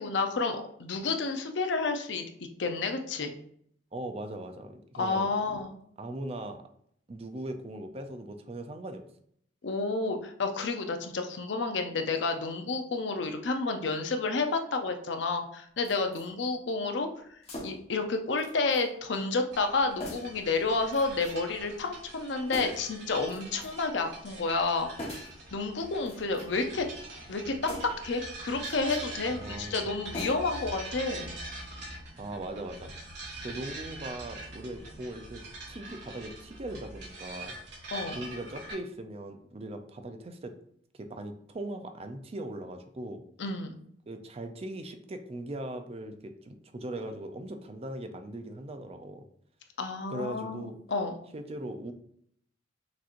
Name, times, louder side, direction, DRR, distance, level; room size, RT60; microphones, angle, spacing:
voice 1, 0.0-2.3 2.6-3.3 5.0-5.8 9.6-17.1 17.6-25.1 25.5-26.9 27.3-31.4 37.9-38.2 43.4-43.7 49.8-51.2, left 3 dB, 70° left, 6 dB, 0.6 m, -30 dB
voice 2, 3.9-5.3 6.0-6.6 7.1-9.0 29.2-29.9 32.2-32.9 33.4-35.4 35.7-37.6 38.1-40.5 40.9-43.2 44.1-49.2 50.1-50.8 51.3-51.9, right 1 dB, 35° right, 7 dB, 0.5 m, -39 dB
sound 1, 15.8-16.3 17.4-17.9 18.4-18.9 19.1-19.2 20.0-20.4 20.9-21.5 22.5-22.9 23.3-23.9 25.0-25.4 26.0-26.7 27.6-28.1 28.6-29.0 30.1-30.7 31.0-31.1, left 1 dB, 35° left, 1.2 m, -42 dB
sound 2, 19.5-38.7, right 2 dB, 65° right, 1.7 m, -43 dB
6.1 x 3.0 x 2.5 m, 0.66 s
head